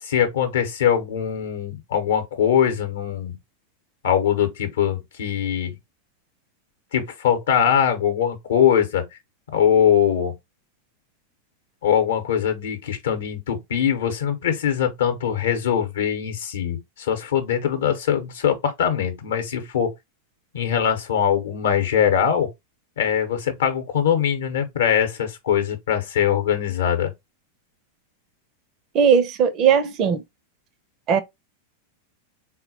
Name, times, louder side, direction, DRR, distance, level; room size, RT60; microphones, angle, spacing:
voice 1, 0.0-3.4 4.0-5.8 6.9-9.1 9.5-10.3 11.8-19.9 20.5-22.5 23.0-27.1, left 9 dB, 60° left, 0.8 m, -22 dB
voice 2, 28.9-30.2 31.1-31.2, right 7 dB, 35° right, 0.5 m, -18 dB
3.9 x 2.1 x 2.7 m
figure-of-eight pair, 90°, 0 cm